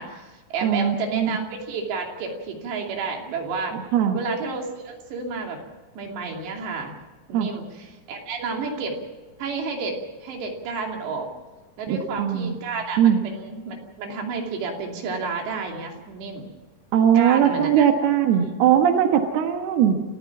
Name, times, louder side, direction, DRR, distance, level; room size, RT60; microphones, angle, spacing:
voice 1, 0.0-3.8 4.1-5.6 6.0-6.9 7.3-9.0 9.4-11.3 11.8-16.5 17.1-17.9 18.4-18.5, right 4 dB, 90° right, 2 dB, 5.0 m, -31 dB
voice 2, 0.6-1.3 3.7-4.2 7.3-7.5 11.9-12.6 13.0-13.2 16.9-20.0, right 9 dB, 70° right, 5 dB, 3.3 m, -20 dB
28.5 x 14.5 x 7.3 m, 1.3 s
omnidirectional pair, 4.8 m